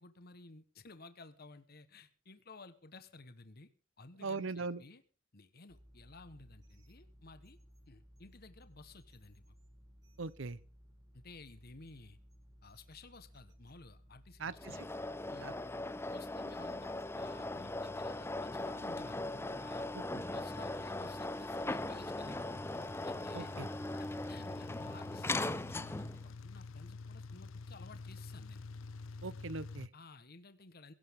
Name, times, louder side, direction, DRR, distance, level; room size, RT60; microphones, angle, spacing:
voice 1, 0.0-3.7 4.0-5.0 5.3-7.6 7.9-9.5 11.1-12.2 12.6-14.9 15.3-15.5 16.1-19.2 19.6-19.9 20.3-22.7 23.0-23.5 23.9-28.6 29.9-30.9, left 3 dB, 50° left, 1.2 m, -55 dB
voice 2, 4.2-4.8 10.2-10.6 14.4-14.7 15.4-15.5 20.1-20.2 23.3-23.7 29.2-29.9, right 3 dB, 70° right, 0.8 m, -40 dB
sound 1, 5.7-22.4, equal, 20° right, 5.4 m, -60 dB
sound 2, 14.6-26.3, left 2 dB, 10° left, 0.6 m, -39 dB
sound 3, 17.9-29.9, left 3 dB, 80° left, 0.6 m, -50 dB
23.0 x 11.5 x 3.7 m
head